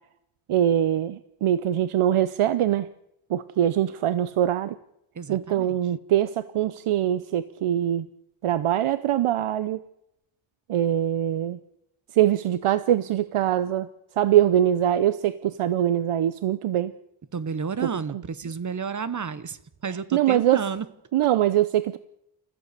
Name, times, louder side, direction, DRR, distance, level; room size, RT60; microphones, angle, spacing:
voice 1, 0.5-2.9 3.3-4.7 5.3-8.1 8.4-9.8 10.7-11.6 12.1-13.9 14.2-16.9 20.1-20.6 21.1-22.0, right 11 dB, 80° right, 15 dB, 0.8 m, -23 dB
voice 2, 5.1-5.8 17.3-20.8, right 6 dB, 35° right, 15 dB, 1.1 m, -31 dB
29.0 x 14.5 x 6.8 m, 0.82 s
wide cardioid pair, 170°, 50 cm